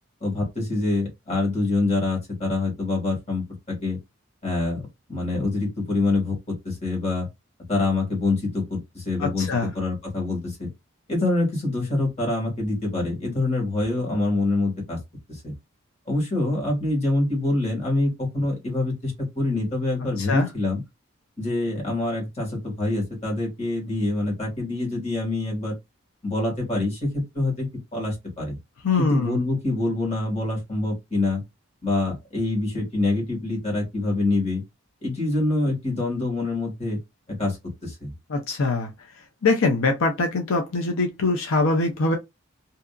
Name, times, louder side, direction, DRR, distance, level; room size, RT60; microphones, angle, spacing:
voice 1, 0.2-4.0 4.4-7.3 7.7-10.7 11.1-15.0 15.3-15.5 16.1-20.8 21.4-25.7 26.2-28.6 29.0-31.4 31.8-34.6 35.0-37.0 37.4-37.6 37.8-38.1, left 2 dB, 30° left, 1.6 m, -25 dB
voice 2, 9.2-9.7 20.2-20.5 28.8-29.4 38.3-38.9 39.4-42.2, left 3 dB, 75° left, 0.5 m, -23 dB
2.7 x 2.4 x 2.3 m
head